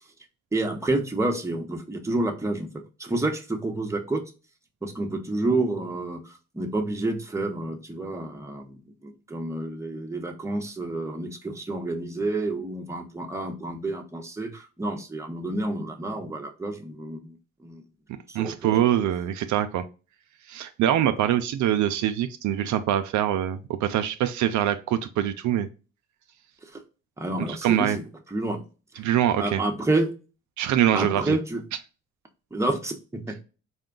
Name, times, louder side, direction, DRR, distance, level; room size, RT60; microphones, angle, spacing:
voice 1, 0.5-4.2 4.8-17.8 18.3-18.7 26.6-26.8 27.2-28.6 28.9-29.0 29.3-30.1 30.9-31.6 32.5-33.4, right 2 dB, 10° right, 3 dB, 0.8 m, -29 dB
voice 2, 18.3-19.8 20.5-25.7 27.5-28.0 29.0-29.6 30.6-31.4, right 11 dB, 70° right, 9 dB, 0.5 m, -24 dB
4.3 x 2.3 x 3.7 m, 0.32 s
cardioid pair, 90°, 30 cm